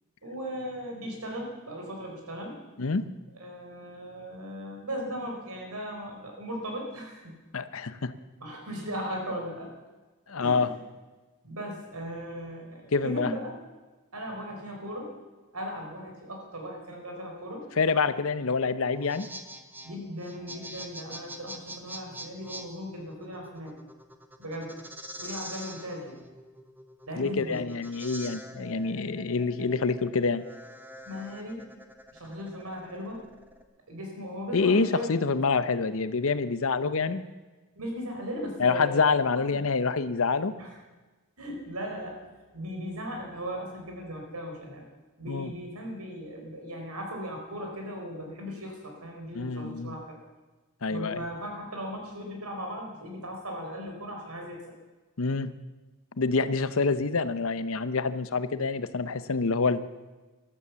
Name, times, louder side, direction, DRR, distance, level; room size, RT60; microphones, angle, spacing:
voice 1, 0.2-2.6 3.4-7.4 8.4-9.7 10.4-10.8 11.4-13.5 14.1-15.2 15.5-17.7 19.8-23.7 24.4-24.8 25.2-26.2 27.1-27.6 31.1-31.6 32.1-33.2 33.9-35.1 37.8-39.6 40.6-40.7 41.4-42.3 42.5-44.8 45.2-50.2 50.9-54.6, equal, 80° right, 1 dB, 4.4 m, -37 dB
voice 2, 2.8-3.1 7.5-8.1 10.3-10.7 12.9-13.3 17.8-19.3 27.2-30.4 34.5-37.3 38.6-40.5 45.3-45.5 49.3-50.0 50.8-51.2 55.2-55.5 56.2-59.8, left 4 dB, 65° left, 14 dB, 0.7 m, -27 dB
sound 1, 18.9-33.6, equal, 10° right, 1.0 m, -45 dB
14.5 x 12.5 x 7.0 m, 1.2 s
head